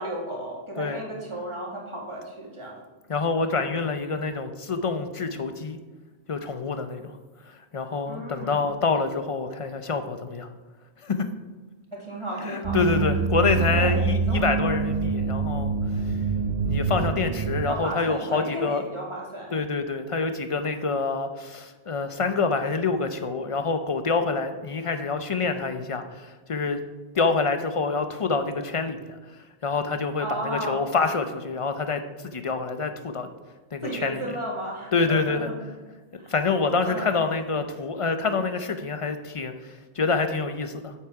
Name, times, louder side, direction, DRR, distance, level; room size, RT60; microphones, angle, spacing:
voice 1, 0.0-2.8 3.4-3.6 8.1-8.6 11.9-13.0 13.4-14.0 14.3-14.4 17.6-19.6 30.2-30.8 33.8-35.5 36.2-36.3 36.8-37.2, right 1 dB, 25° right, -3 dB, 2.1 m, -34 dB
voice 2, 3.1-5.8 6.3-7.2 7.5-10.5 11.0-11.3 12.5-15.7 16.6-18.8 19.5-26.8 27.1-29.2 29.6-33.3 33.7-34.2 34.9-35.5 36.1-40.9, left 4 dB, 35° left, 8 dB, 0.6 m, -26 dB
sound 1, 12.6-17.7, right 4 dB, 45° right, 0.7 m, -26 dB
8.5 x 7.4 x 4.7 m, 1.3 s
omnidirectional pair, 1.1 m